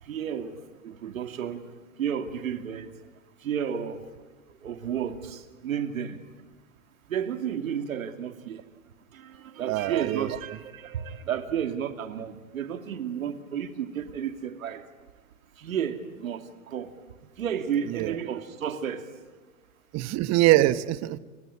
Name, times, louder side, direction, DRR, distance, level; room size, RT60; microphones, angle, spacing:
voice 1, 0.0-1.6 2.0-2.9 3.4-4.0 4.6-6.2 7.1-8.6 9.1-14.8 15.6-16.9 17.4-19.1, right 8 dB, 80° right, 8 dB, 2.5 m, -32 dB
voice 2, 9.7-10.3 17.9-18.2 19.9-21.2, right 15 dB, 40° right, 14 dB, 1.3 m, -23 dB
29.5 x 24.0 x 8.5 m, 1.3 s
hypercardioid pair, 100°, 41 cm